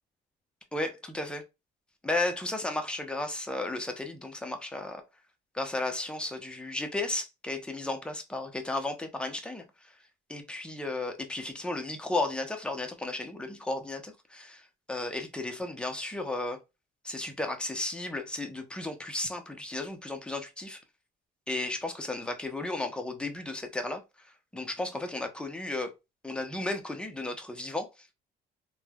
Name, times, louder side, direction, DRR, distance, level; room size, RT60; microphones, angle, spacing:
voice 1, 0.7-1.4 2.0-5.0 5.5-9.9 10.3-16.6 17.0-20.8 21.5-24.3 24.5-25.9 26.2-28.1, left 2 dB, 5° left, 0.6 m, -34 dB
3.1 x 2.1 x 2.2 m
cardioid pair, 110°, 17 cm